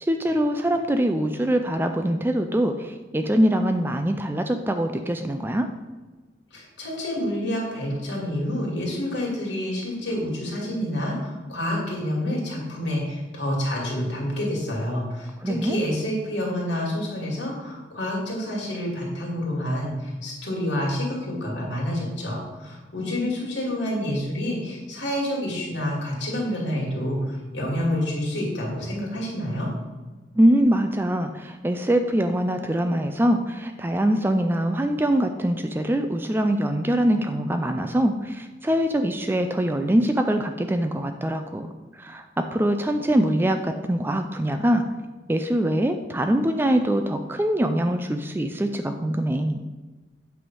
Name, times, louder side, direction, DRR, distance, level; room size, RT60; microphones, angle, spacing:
voice 1, 0.0-5.7 15.4-15.8 30.4-44.8 45.3-49.6, right 1 dB, 10° right, 7 dB, 0.3 m, -23 dB
voice 2, 6.5-29.7, left 1 dB, 65° left, -4 dB, 2.5 m, -28 dB
8.6 x 3.5 x 6.1 m, 1.3 s
head